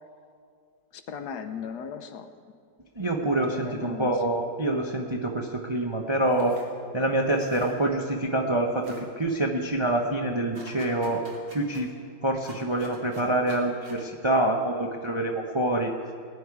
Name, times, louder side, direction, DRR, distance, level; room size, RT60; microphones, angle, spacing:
voice 1, 0.9-2.6 3.4-4.2, left 7 dB, 70° left, 8 dB, 1.3 m, -37 dB
voice 2, 3.0-6.5 6.9-11.2 11.5-11.9 12.2-15.9, right 1 dB, 30° right, 1 dB, 0.5 m, -26 dB
sound 1, 6.2-6.7 7.2-8.1 8.4-8.5 8.8-9.0 10.5-11.8 12.4-14.0, right 3 dB, 90° right, 2.7 m, -46 dB
19.5 x 9.9 x 4.7 m, 2.2 s
omnidirectional pair, 1.9 m